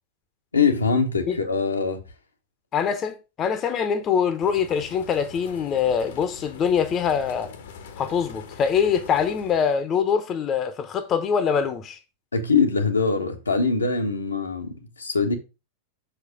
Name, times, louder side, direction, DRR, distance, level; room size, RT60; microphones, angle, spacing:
voice 1, 0.5-2.0 12.3-15.3, left 4 dB, 75° left, 1.2 m, -23 dB
voice 2, 2.7-7.5 8.0-12.0, left 7 dB, 30° left, 1.0 m, -24 dB
sound 1, 4.4-9.8, left 5 dB, 60° left, 1.1 m, -42 dB
6.5 x 5.0 x 5.1 m
figure-of-eight pair, 90°, 0 cm